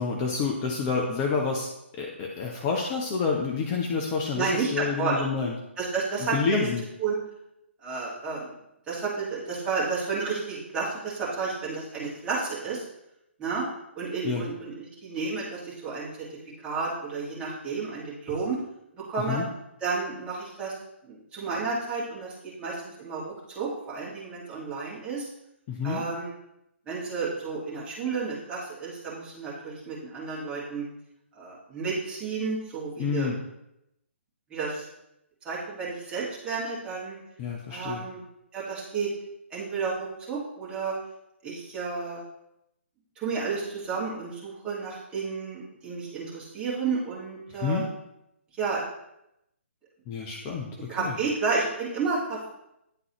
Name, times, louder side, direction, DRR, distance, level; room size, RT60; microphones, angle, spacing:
voice 1, 0.0-1.7 2.0-5.5 6.3-6.8 14.2-14.5 19.3-19.5 25.7-26.0 33.0-33.3 37.4-38.0 47.6-47.9 50.1-51.1, left 5 dB, 25° left, 0 dB, 0.7 m, -28 dB
voice 2, 4.3-5.2 5.8-6.7 7.0-7.2 7.8-8.5 8.9-12.9 13.4-13.6 14.0-16.3 16.6-18.6 18.9-19.4 19.8-20.7 21.0-25.3 25.8-26.3 26.9-30.9 31.3-33.3 34.5-34.9 35.4-37.2 37.7-38.2 38.5-39.1 39.5-40.9 41.4-42.2 43.2-47.9 48.6-48.8 50.4-50.6 50.9-52.5, right 4 dB, 15° right, -7 dB, 2.0 m, -31 dB
9.8 x 3.8 x 3.0 m, 0.83 s
figure-of-eight pair, 135°, 7 cm